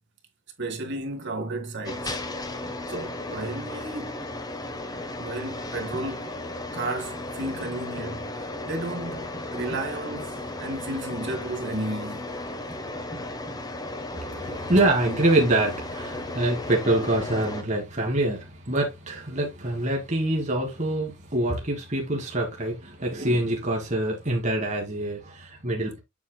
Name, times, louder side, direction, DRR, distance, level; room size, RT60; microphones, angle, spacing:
voice 1, 0.6-2.2 2.9-4.3 5.2-6.3 6.7-8.3 8.6-12.3, right 1 dB, 55° right, 1.9 m, -33 dB
sound 1, 1.9-17.6, left 2 dB, 15° left, 1.0 m, -35 dB
voice 2, 14.1-26.0, right 1 dB, 35° right, 1.6 m, -25 dB
7.3 x 7.1 x 2.2 m
head